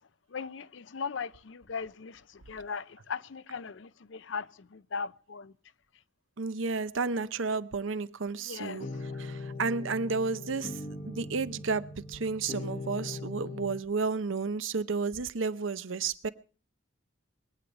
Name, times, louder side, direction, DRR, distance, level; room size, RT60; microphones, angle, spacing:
voice 1, 0.3-5.5 8.5-8.9, left 5 dB, 70° left, 0.6 m, -38 dB
voice 2, 6.4-16.3, right 4 dB, 80° right, 0.7 m, -32 dB
sound 1, 8.8-13.8, left 2 dB, 35° left, 1.1 m, -40 dB
22.0 x 8.6 x 5.2 m
head